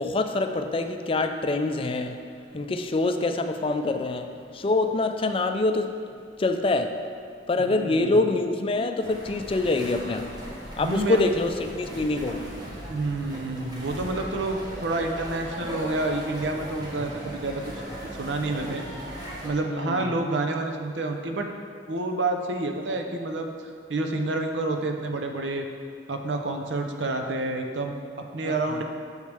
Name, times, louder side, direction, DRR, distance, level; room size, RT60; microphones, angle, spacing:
voice 1, 0.0-2.2 2.5-6.0 6.4-7.0 7.5-10.3 10.8-12.4 19.7-20.2 28.4-28.8, left 2 dB, 30° left, 7 dB, 0.4 m, -25 dB
voice 2, 7.6-8.2 10.8-11.2 12.9-17.6 18.2-18.8 19.4-21.5 21.9-25.7 26.1-27.9 28.3-28.8, right 2 dB, 80° right, 4 dB, 0.7 m, -29 dB
sound 1, 9.0-19.5, equal, 20° right, 1.2 m, -38 dB
8.2 x 6.5 x 3.4 m, 2.2 s
head